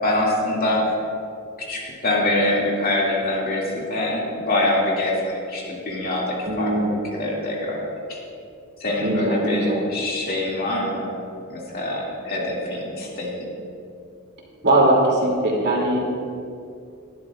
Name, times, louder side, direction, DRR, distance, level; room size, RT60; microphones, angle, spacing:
voice 1, 0.0-0.9 1.7-7.8 8.1-8.2 8.8-11.1 11.5-13.5, left 1 dB, 45° left, -3 dB, 2.3 m, -24 dB
voice 2, 6.5-6.9 9.0-9.8 14.6-16.1, right 1 dB, 50° right, -3 dB, 2.6 m, -20 dB
19.0 x 11.5 x 2.4 m, 2.5 s
head